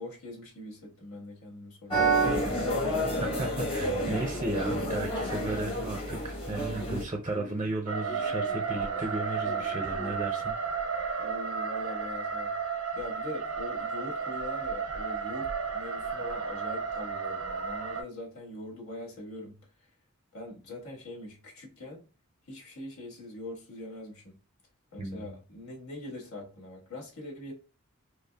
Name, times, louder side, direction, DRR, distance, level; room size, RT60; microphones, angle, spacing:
voice 1, 0.0-2.6 11.2-19.9 20.3-22.1 22.4-24.4 24.9-27.5, left 1 dB, 85° left, 1.5 m, -43 dB
sound 1, 1.9-7.0, right 1 dB, 25° left, 1.1 m, -29 dB
sound 2, 3.0-6.5 6.8-10.1, left 1 dB, 55° left, 0.7 m, -48 dB
voice 2, 3.2-10.5 25.0-25.3, right 2 dB, 25° right, 0.4 m, -34 dB
sound 3, 7.9-18.0, right 5 dB, 80° right, 0.5 m, -33 dB
5.2 x 2.0 x 2.2 m
head